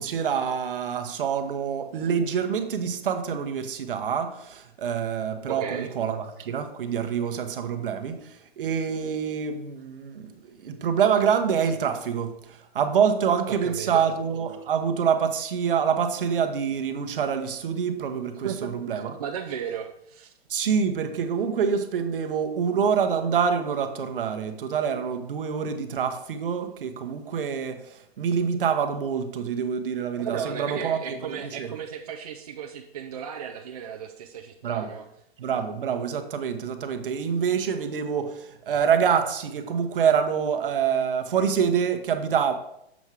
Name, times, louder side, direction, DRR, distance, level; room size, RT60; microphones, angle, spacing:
voice 1, 0.0-8.2 8.6-12.4 12.7-19.1 20.5-27.8 28.2-31.7 34.6-34.9 35.4-42.5, right 7 dB, 55° right, 7 dB, 1.1 m, -26 dB
voice 2, 5.5-5.9 13.5-14.0 18.4-20.3 30.2-35.0, right 8 dB, 40° right, 1 dB, 0.5 m, -35 dB
7.2 x 5.3 x 4.7 m, 0.77 s
hypercardioid pair, 175°, 32 cm